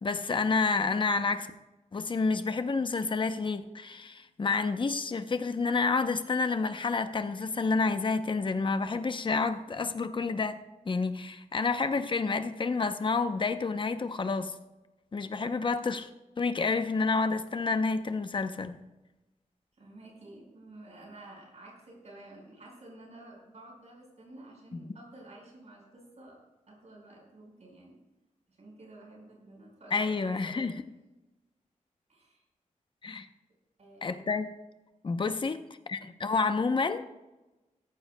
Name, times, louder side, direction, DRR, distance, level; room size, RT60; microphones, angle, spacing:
voice 1, 0.0-1.5 1.9-14.5 15.1-16.1 16.4-18.8 24.7-24.9 29.9-30.7 33.0-33.3 34.0-34.5 35.0-35.6 35.9-37.0, left 4 dB, 40° left, 0.7 m, -29 dB
voice 2, 19.8-28.0 28.6-30.7 32.1-32.4 33.8-34.3, right 2 dB, 60° right, 4.7 m, -51 dB
16.5 x 14.0 x 2.2 m
wide cardioid pair, 160°, 13 cm